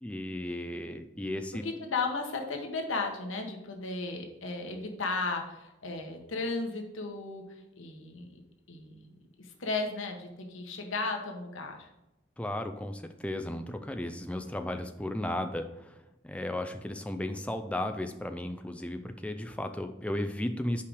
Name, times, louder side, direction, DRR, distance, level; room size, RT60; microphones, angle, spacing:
voice 1, 0.0-1.6 12.4-20.8, left 1 dB, 5° left, 7 dB, 0.4 m, -35 dB
voice 2, 1.6-8.4 8.7-9.1 9.4-11.9, left 3 dB, 85° left, 3 dB, 1.2 m, -35 dB
5.7 x 5.0 x 6.2 m, 0.96 s
head